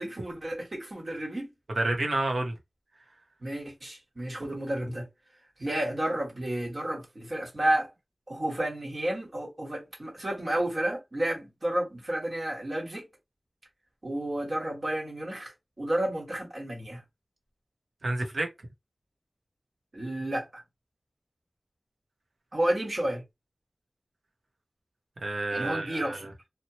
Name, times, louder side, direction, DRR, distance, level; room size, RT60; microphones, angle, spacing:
voice 1, 0.0-1.5 3.4-5.0 5.6-7.9 8.3-13.1 14.0-15.5 15.8-17.0 19.9-20.6 22.5-23.2 25.5-26.3, right 1 dB, 50° right, 1.4 m, -31 dB
voice 2, 1.7-2.5 18.0-18.5 25.2-26.2, right 2 dB, 90° right, 0.9 m, -29 dB
2.9 x 2.2 x 2.9 m
wide cardioid pair, 75°, 0 cm